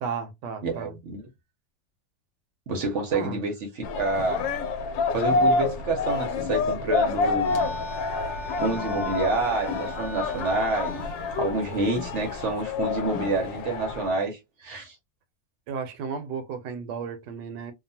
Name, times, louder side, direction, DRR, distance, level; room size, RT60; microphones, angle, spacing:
voice 1, 0.0-0.9 3.1-3.4 15.7-17.7, right 6 dB, 75° right, 1.2 m, -34 dB
voice 2, 0.6-1.2 2.7-4.5 5.1-7.6 8.6-11.1 11.4-14.9, right 3 dB, 55° right, 0.8 m, -28 dB
sound 1, 3.8-14.1, left 4 dB, 90° left, 1.3 m, -28 dB
sound 2, 7.3-12.5, equal, ahead, 0.8 m, -39 dB
2.9 x 2.3 x 2.6 m
omnidirectional pair, 1.9 m